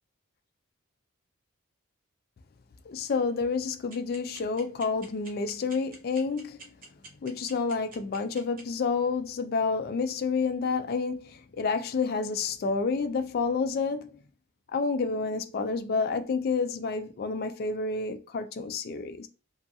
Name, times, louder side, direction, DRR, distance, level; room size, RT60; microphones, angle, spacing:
voice 1, 2.9-6.6 7.2-14.2 14.7-19.3, left 4 dB, 45° left, 0.3 m, -29 dB
sound 1, 3.9-8.6, right 3 dB, 40° right, 0.7 m, -46 dB
2.5 x 2.3 x 2.6 m
head